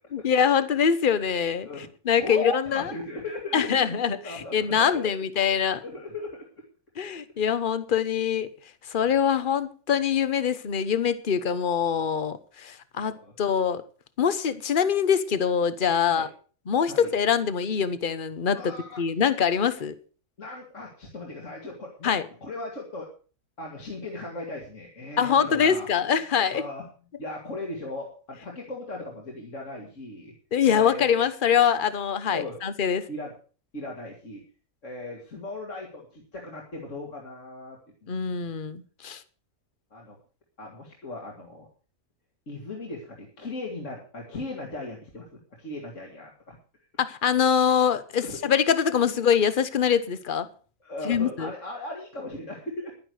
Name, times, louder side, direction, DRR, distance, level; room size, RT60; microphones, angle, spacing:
voice 1, 0.1-1.7 2.0-2.9 3.5-5.8 7.0-8.5 8.9-13.8 14.2-16.3 16.7-19.9 22.0-22.3 25.2-26.6 30.5-33.1 38.1-39.2 47.0-50.5 51.0-51.5, left 7 dB, 40° left, 1.1 m, -24 dB
voice 2, 2.1-3.9 4.2-5.1 5.8-6.4 9.0-9.2 13.0-13.3 16.1-16.3 16.9-17.1 18.5-19.0 20.4-22.1 22.4-23.1 23.6-25.9 26.5-26.9 27.2-30.3 30.7-31.2 32.3-32.6 33.1-33.3 33.7-34.4 34.8-38.5 39.9-40.2 40.6-41.7 42.5-45.2 45.6-46.6 48.2-48.4 50.8-52.9, left 2 dB, 60° left, 2.8 m, -37 dB
11.5 x 10.5 x 6.4 m
omnidirectional pair, 1.4 m